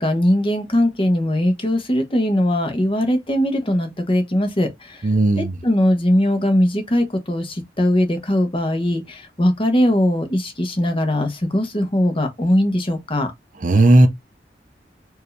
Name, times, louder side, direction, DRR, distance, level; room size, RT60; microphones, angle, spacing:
voice 1, 0.0-5.0 5.4-13.3, left 1 dB, 30° left, 1.1 m, -20 dB
voice 2, 5.0-5.5 13.6-14.1, right 2 dB, 45° right, 0.7 m, -14 dB
4.6 x 2.8 x 3.2 m
head